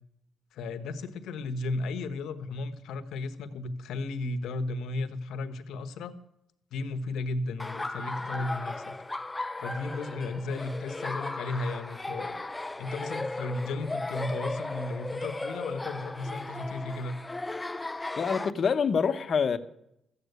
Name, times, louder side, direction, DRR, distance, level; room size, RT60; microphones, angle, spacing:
voice 1, 0.5-6.1 6.7-8.9 9.6-12.4 12.8-17.2, left 2 dB, 80° left, 1.1 m, -34 dB
Laughter, 7.6-18.5, left 2 dB, 15° left, 0.5 m, -36 dB
voice 2, 18.2-19.6, left 6 dB, 50° left, 0.9 m, -26 dB
14.0 x 8.1 x 8.1 m
cardioid pair, 90°, 0 cm